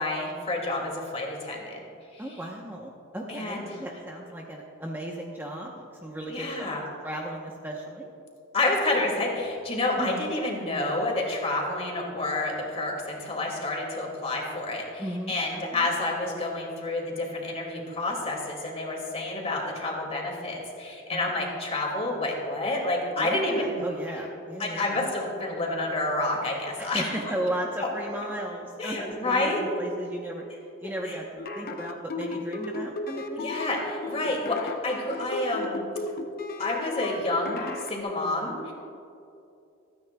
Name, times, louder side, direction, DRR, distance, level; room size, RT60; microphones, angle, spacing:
voice 1, 0.0-1.8 2.1-2.4 3.3-3.7 6.3-6.8 8.5-23.8 24.6-27.1 27.8-27.9 28.8-29.6 30.8-31.2 33.4-35.8 36.6-38.7, left 2 dB, 30° left, -1 dB, 2.3 m, -29 dB
voice 2, 2.2-6.7 7.0-8.1 10.0-10.3 15.0-15.9 21.1-21.3 23.2-25.1 26.8-30.4 30.8-33.5 34.3-34.4, right 1 dB, 10° right, -1 dB, 0.9 m, -35 dB
sound 1, 31.4-37.9, left 3 dB, 45° left, 0.7 m, -35 dB
26.5 x 9.5 x 2.3 m, 2.6 s
head